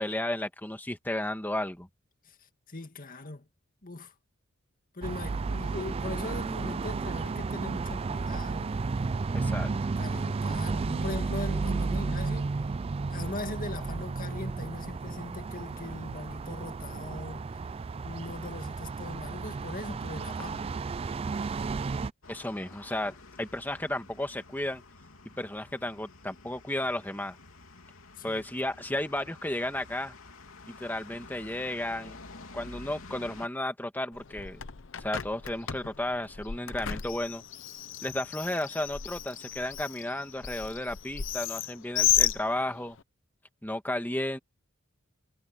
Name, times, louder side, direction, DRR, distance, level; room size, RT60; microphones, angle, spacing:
voice 1, 0.0-1.9 9.3-9.7 22.3-24.8 25.4-27.4 28.2-30.1 30.7-32.2 32.5-34.6 35.0-37.4 38.0-43.0 43.6-44.4, left 1 dB, 10° left, 1.8 m, -33 dB
voice 2, 2.2-3.5 3.8-4.1 4.9-8.8 9.4-12.5 13.1-17.5 18.0-20.7 28.2-28.4, left 2 dB, 40° left, 2.1 m, -40 dB
sound 1, 5.0-22.1, right 4 dB, 30° right, 0.3 m, -33 dB
sound 2, 22.2-33.5, left 3 dB, 85° left, 3.2 m, -50 dB
Bird, 34.1-43.0, left 11 dB, 65° left, 0.8 m, -33 dB
head